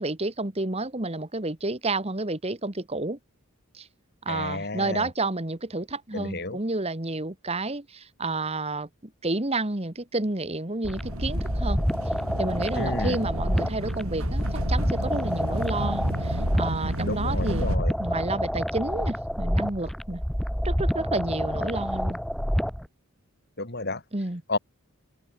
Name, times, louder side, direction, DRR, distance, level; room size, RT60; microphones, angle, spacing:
voice 1, 0.0-3.2 3.7-3.9 4.2-8.9 9.2-11.8 12.1-17.7 18.0-20.2 20.6-22.2 24.1-24.4, right 2 dB, 30° right, 1.6 m, -30 dB
voice 2, 4.3-5.1 6.1-6.6 12.8-13.2 17.1-17.9 23.6-24.0 24.5-24.6, left 2 dB, 50° left, 4.3 m, -31 dB
sound 1, 10.8-22.9, equal, ahead, 1.4 m, -28 dB
sound 2, 10.9-17.8, right 1 dB, 75° right, 6.7 m, -32 dB
head